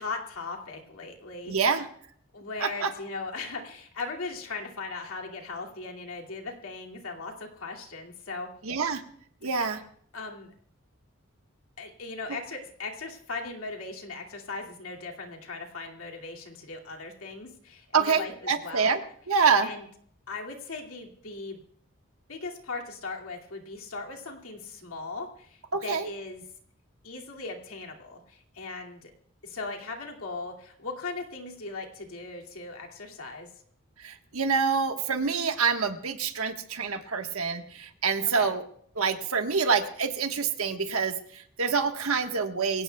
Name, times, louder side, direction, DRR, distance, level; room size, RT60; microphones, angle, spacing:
voice 1, 0.0-1.7 2.3-8.5 9.4-9.8 10.1-10.5 11.8-19.0 19.6-19.8 20.3-21.6 22.3-26.4 27.0-29.1 29.4-33.5 38.4-38.5, left 3 dB, 85° left, 1 dB, 2.5 m, -38 dB
voice 2, 1.5-1.9 2.6-2.9 8.6-9.0 9.4-9.8 17.9-19.0 19.3-19.7 25.7-26.1 34.0-38.6 39.0-42.8, right 5 dB, 85° right, 6 dB, 1.4 m, -26 dB
24.5 x 17.0 x 2.3 m, 0.62 s
head